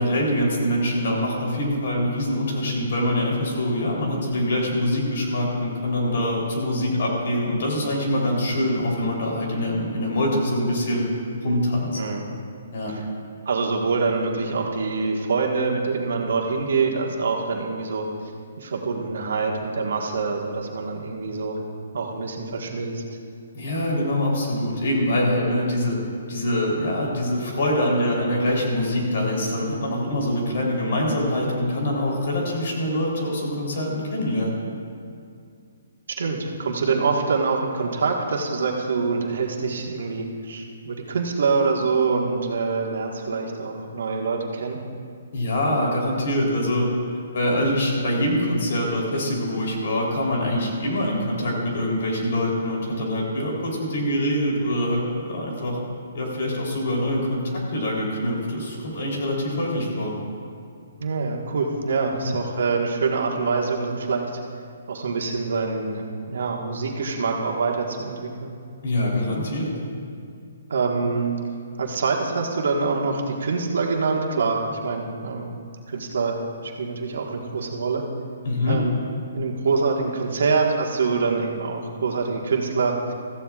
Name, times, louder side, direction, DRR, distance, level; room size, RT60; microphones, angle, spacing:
voice 1, 0.0-11.1 11.4-12.0 12.7-13.0 23.5-26.0 26.3-34.6 45.3-46.9 47.3-55.8 56.1-60.1 62.2-62.4 68.8-69.8 78.5-78.8, left 1 dB, 55° left, -2 dB, 3.5 m, -24 dB
voice 2, 13.4-18.1 18.6-21.6 21.9-23.0 36.2-44.8 61.0-64.4 64.9-68.5 70.7-71.4 71.8-75.5 75.9-78.0 78.7-79.0 79.3-83.1, right 4 dB, 70° right, 1 dB, 1.6 m, -25 dB
16.0 x 14.5 x 2.4 m, 2.3 s
hypercardioid pair, 165°, 0 cm